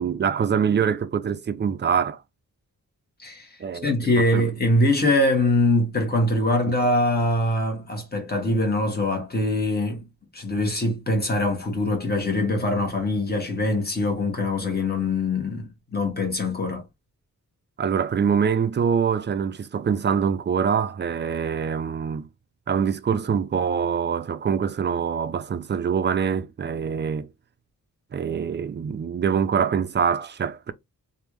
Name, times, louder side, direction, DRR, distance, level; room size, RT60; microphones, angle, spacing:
voice 1, 0.0-2.2 3.6-4.5 17.8-22.3 22.7-27.3 28.1-30.7, right 7 dB, 30° right, 0.4 m, -24 dB
voice 2, 3.8-10.0 10.3-16.8, left 1 dB, 25° left, 1.5 m, -23 dB
3.3 x 2.6 x 3.0 m
wide cardioid pair, 110°, 35 cm